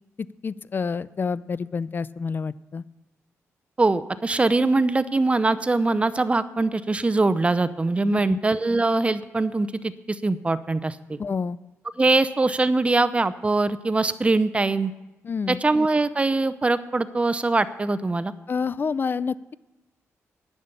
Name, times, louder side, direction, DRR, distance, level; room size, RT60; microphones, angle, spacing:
voice 1, 0.4-2.8 8.1-8.4 11.2-11.6 15.2-15.6 18.5-19.4, left 5 dB, 40° left, 19 dB, 0.4 m, -28 dB
voice 2, 3.8-11.2 12.0-14.9 15.5-18.3, right 3 dB, 20° right, 14 dB, 0.6 m, -22 dB
10.5 x 6.7 x 9.0 m, 1.0 s
cardioid pair, 85°, 5 cm